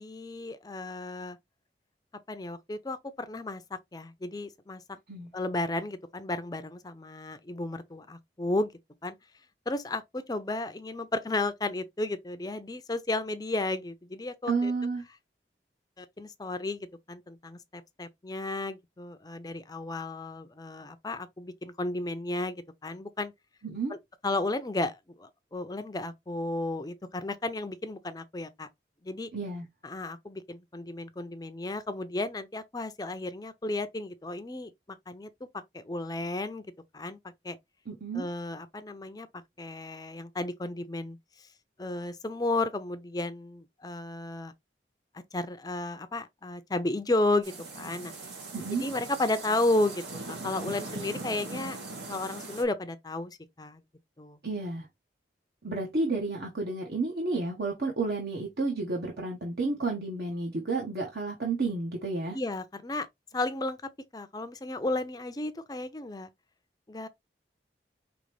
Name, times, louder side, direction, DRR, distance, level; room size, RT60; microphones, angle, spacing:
voice 1, 0.0-1.4 2.3-4.8 5.3-8.7 9.0-9.2 9.7-14.7 16.0-23.3 23.9-24.0 24.2-28.7 29.0-29.3 29.8-34.7 35.1-35.3 35.7-36.6 36.9-37.2 37.4-37.6 38.1-39.3 39.6-41.2 41.8-44.5 45.3-48.1 48.8-51.8 52.1-53.8 54.2-54.4 62.3-63.1 63.3-66.3 66.9-67.1, left 2 dB, 20° left, 0.5 m, -33 dB
voice 2, 14.5-15.0 23.6-23.9 29.3-29.7 37.9-38.3 48.5-48.8 54.4-54.9 55.6-62.4, right 3 dB, 60° right, 1.1 m, -31 dB
sound 1, 47.4-52.6, right 3 dB, 80° right, 2.1 m, -40 dB
5.2 x 3.0 x 3.2 m
head